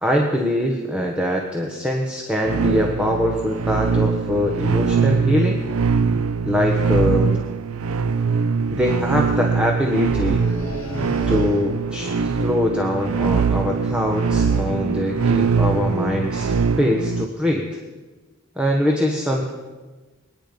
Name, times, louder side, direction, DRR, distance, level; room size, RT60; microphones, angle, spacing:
voice 1, 0.0-5.6 6.4-7.4 8.7-10.4 11.3-17.8 18.6-19.5, left 1 dB, 5° right, 0 dB, 1.2 m, -23 dB
sound 1, 2.4-17.3, right 5 dB, 90° right, 0.6 m, -22 dB
sound 2, 9.9-11.9, right 1 dB, 40° left, 7.2 m, -34 dB
26.0 x 9.8 x 5.3 m, 1.3 s
head